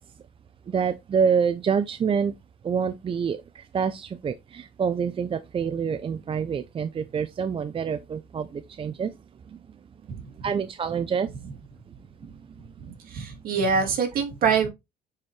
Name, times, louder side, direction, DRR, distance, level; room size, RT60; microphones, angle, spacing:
voice 1, 0.7-2.3 2.6-9.1 10.4-11.3 12.2-12.3, right 6 dB, 30° right, 0.5 m, -27 dB
voice 2, 12.8-14.7, right 5 dB, 60° right, 2.8 m, -25 dB
9.5 x 4.5 x 3.2 m
cardioid pair, 110°, 17 cm